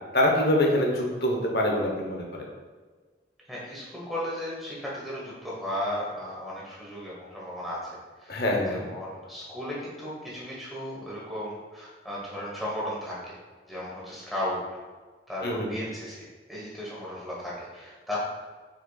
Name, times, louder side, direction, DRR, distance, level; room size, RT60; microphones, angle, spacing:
voice 1, 0.1-2.5 8.3-8.8 15.4-15.7, left 1 dB, 60° left, 0 dB, 0.8 m, -25 dB
voice 2, 3.5-7.8 8.2-8.3 8.7-13.3 13.7-14.6 15.3-18.2, left 1 dB, ahead, -7 dB, 1.1 m, -35 dB
4.7 x 4.2 x 2.3 m, 1.4 s
head